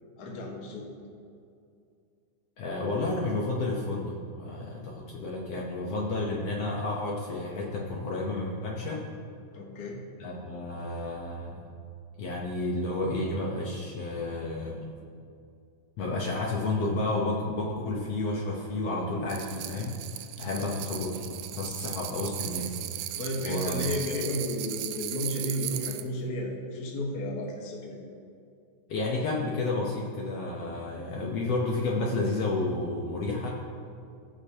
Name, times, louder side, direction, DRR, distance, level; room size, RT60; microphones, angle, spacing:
voice 1, 0.2-0.9 9.5-10.0 20.4-20.7 23.2-28.1, left 1 dB, 45° left, -1 dB, 1.3 m, -33 dB
voice 2, 2.6-9.1 10.2-11.7 12.2-14.9 16.0-20.0 20.4-23.1 23.4-23.8 28.9-33.5, left 2 dB, 65° left, -2 dB, 1.8 m, -31 dB
sound 1, 19.3-26.1, right 13 dB, 80° right, 1.9 m, -37 dB
20.0 x 6.7 x 2.8 m, 2.4 s
omnidirectional pair, 3.5 m